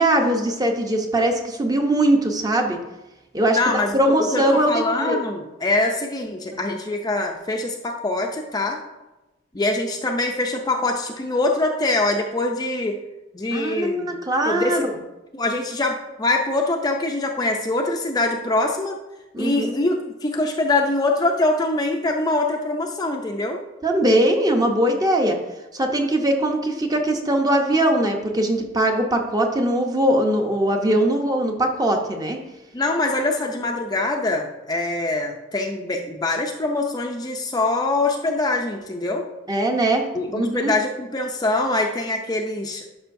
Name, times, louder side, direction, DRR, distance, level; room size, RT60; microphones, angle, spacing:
voice 1, 0.0-2.8 3.3-5.2 6.5-6.6 13.5-14.9 19.3-19.8 23.8-25.4 25.7-32.4 39.5-40.7, right 1 dB, 20° right, 3 dB, 0.7 m, -21 dB
voice 2, 3.5-8.8 9.5-13.0 13.3-14.1 14.5-14.8 15.3-18.9 19.4-20.0 20.2-23.6 32.7-39.2 40.1-42.9, left 2 dB, 20° left, 2 dB, 0.5 m, -23 dB
11.0 x 5.5 x 2.6 m, 1.0 s
head